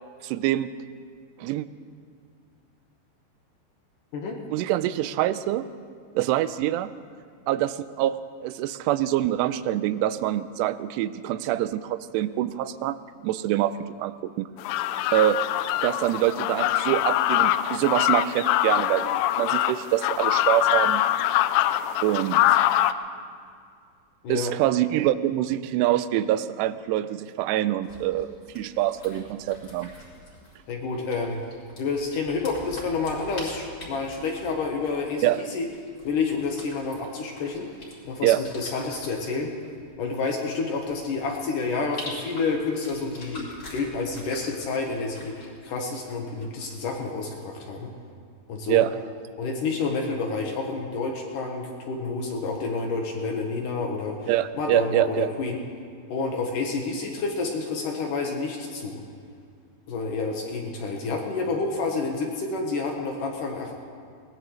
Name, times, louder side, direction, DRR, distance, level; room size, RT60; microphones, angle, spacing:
voice 1, 0.2-0.7 1.4-1.7 4.5-5.6 6.2-6.9 7.5-13.0 13.2-14.5 15.1-15.4 15.8-21.0 22.0-22.4 24.3-29.9 35.2-35.5 38.2-38.4 48.7-48.9 54.3-55.3, right 13 dB, 90° right, 14 dB, 2.7 m, -25 dB
sound 1, 14.6-22.9, left 13 dB, 85° left, 2.6 m, -23 dB
voice 2, 24.2-24.5 30.7-31.4 31.8-35.7 36.0-37.7 38.0-39.5 40.0-47.9 48.5-48.9 49.4-55.6 56.1-59.0 59.9-63.7, left 4 dB, 65° left, 1 dB, 2.4 m, -29 dB
sound 2, 27.8-47.0, left 1 dB, 25° left, 3.7 m, -45 dB
21.5 x 19.0 x 3.2 m, 2.2 s
omnidirectional pair, 4.8 m